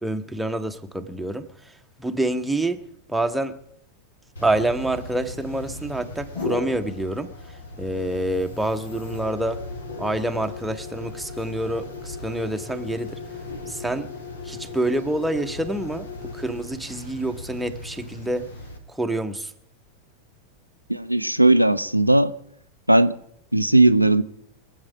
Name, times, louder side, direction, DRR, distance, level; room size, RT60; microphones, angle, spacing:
voice 1, 0.0-1.7 2.0-2.8 3.1-3.6 4.4-7.3 7.8-9.6 10.0-13.2 13.7-14.1 14.4-18.5 18.9-19.5, right 1 dB, 5° right, 1.0 m, -27 dB
sound 1, 4.4-18.8, left 3 dB, 70° left, 2.3 m, -37 dB
voice 2, 20.9-22.3 22.9-23.1 23.5-24.2, right 2 dB, 90° right, 0.5 m, -17 dB
24.0 x 8.1 x 5.1 m
figure-of-eight pair, 90°, 0 cm